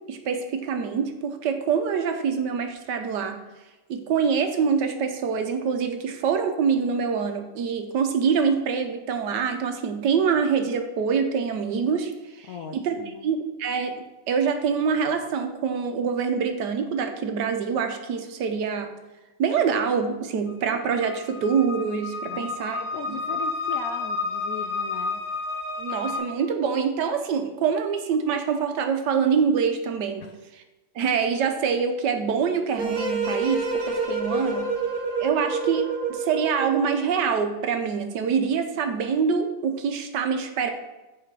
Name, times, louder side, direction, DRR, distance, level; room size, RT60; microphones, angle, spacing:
voice 1, 0.1-3.4 3.9-12.1 12.4-12.9 13.2-13.9 14.3-18.9 19.4-22.8 23.1-23.2 25.8-30.2 30.9-34.7 35.2-40.7, right 6 dB, 75° right, 6 dB, 1.4 m, -25 dB
voice 2, 12.5-13.3 22.3-25.2 30.2-30.4, left 6 dB, 70° left, 5 dB, 0.8 m, -38 dB
sound 1, 20.5-26.2, left 4 dB, 15° left, 2.2 m, -31 dB
sound 2, 32.8-37.1, right 3 dB, 35° right, 0.6 m, -28 dB
8.3 x 5.0 x 4.7 m, 1.1 s
omnidirectional pair, 1.9 m